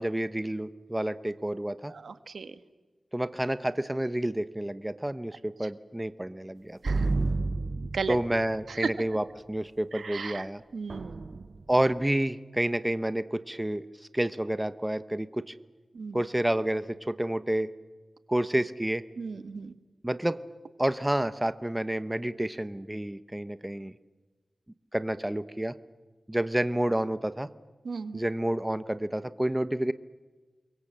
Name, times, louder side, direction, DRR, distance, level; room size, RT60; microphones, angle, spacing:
voice 1, 0.0-1.9 3.1-6.8 8.1-10.6 11.7-13.8 14.1-15.5 16.1-17.7 18.3-19.0 20.0-20.4 20.8-23.9 24.9-25.7 26.3-27.5 28.1-29.9, right 1 dB, 15° right, 13 dB, 1.0 m, -29 dB
voice 2, 1.9-2.5 6.8-7.1 7.4-8.2 8.7-8.9 9.9-10.4 10.7-11.4 15.9-16.2 19.2-19.7 27.8-28.2, right 5 dB, 80° right, 11 dB, 1.4 m, -36 dB
sound 1, 6.9-8.6 10.9-11.8, right 3 dB, 50° right, 0.8 m, -30 dB
28.5 x 22.5 x 7.6 m, 1.3 s
wide cardioid pair, 80°, 0 cm